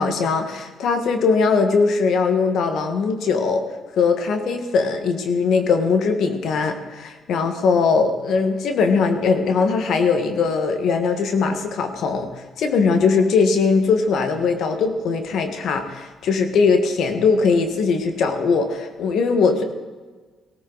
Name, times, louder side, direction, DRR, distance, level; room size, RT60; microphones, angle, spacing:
voice 1, 0.0-3.6 4.0-19.6, left 4 dB, 75° left, 6 dB, 1.6 m, -20 dB
17.5 x 14.0 x 4.1 m, 1.4 s
cardioid pair, 90°, 0 cm